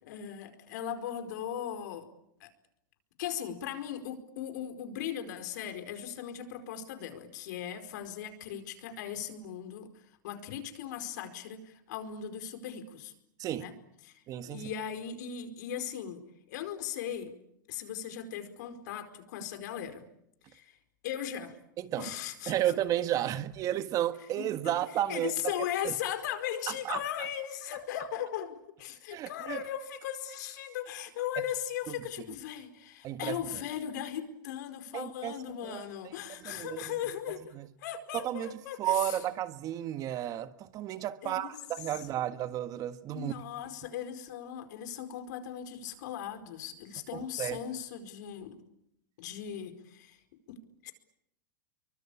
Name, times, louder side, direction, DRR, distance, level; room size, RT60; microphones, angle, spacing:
voice 1, 0.0-2.1 2.4-2.5 3.2-9.9 10.2-13.1 13.6-13.7 14.0-14.1 14.4-16.2 16.5-17.3 17.7-20.0 20.5-20.7 21.0-21.6 22.0-22.5 24.4-24.7 25.1-37.4 37.8-39.2 41.2-41.6 43.1-48.5 49.2-50.2 50.5-50.9, left 10 dB, 65° left, 4.8 m, -38 dB
voice 2, 14.3-14.7 21.8-22.1 22.5-25.3 25.8-25.9 26.8-27.3 29.1-29.6 31.9-32.0 33.0-33.4 34.9-35.4 35.6-36.1 36.4-36.8 37.5-37.7 38.1-38.5 38.8-43.3 47.1-47.6, right 12 dB, 35° right, 1.5 m, -33 dB
26.0 x 24.0 x 8.6 m
supercardioid pair, 130°, 10 cm